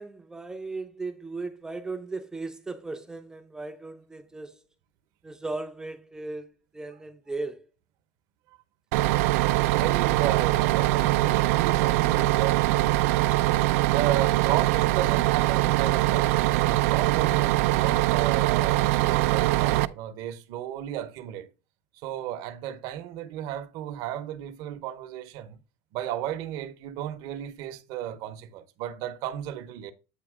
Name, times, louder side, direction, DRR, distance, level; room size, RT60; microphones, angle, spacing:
voice 1, 0.0-4.6 5.2-6.5 6.7-7.7, right 3 dB, 10° right, 0.5 m, -36 dB
Bus, 8.9-19.9, right 17 dB, 75° right, 0.4 m, -23 dB
voice 2, 9.7-12.6 13.3-21.5 22.0-25.6 25.9-29.9, right 11 dB, 55° right, 0.8 m, -34 dB
8.2 x 2.9 x 4.8 m
supercardioid pair, 150°, 8 cm